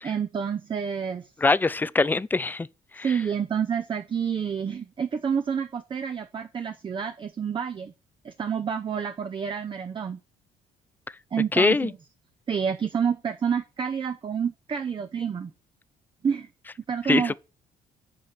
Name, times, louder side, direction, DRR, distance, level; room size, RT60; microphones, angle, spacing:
voice 1, 0.0-1.3 3.0-7.9 8.2-10.2 11.3-11.9 12.5-15.5 16.2-16.5 16.9-17.4, right 7 dB, 30° right, 0.7 m, -28 dB
voice 2, 1.4-2.7 3.0-3.1 11.5-11.9 17.1-17.4, left 3 dB, 10° left, 0.3 m, -22 dB
8.5 x 4.4 x 6.5 m
cardioid pair, 110°, 17 cm